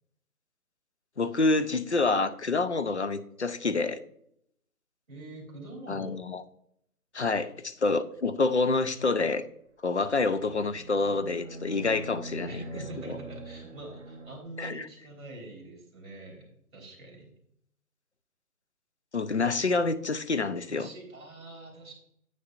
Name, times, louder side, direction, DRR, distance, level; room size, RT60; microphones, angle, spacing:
voice 1, 1.2-4.0 5.9-6.4 7.1-9.5 9.8-12.6 14.6-14.9 19.1-20.9, left 3 dB, 50° left, 13 dB, 0.5 m, -27 dB
voice 2, 5.1-6.2 12.4-17.3 19.6-19.8 20.7-21.9, right 2 dB, 5° right, -13 dB, 1.8 m, -44 dB
sound 1, 9.9-14.4, right 2 dB, 50° right, 0.8 m, -43 dB
9.8 x 9.2 x 2.5 m, 0.71 s
hypercardioid pair, 180°, 46 cm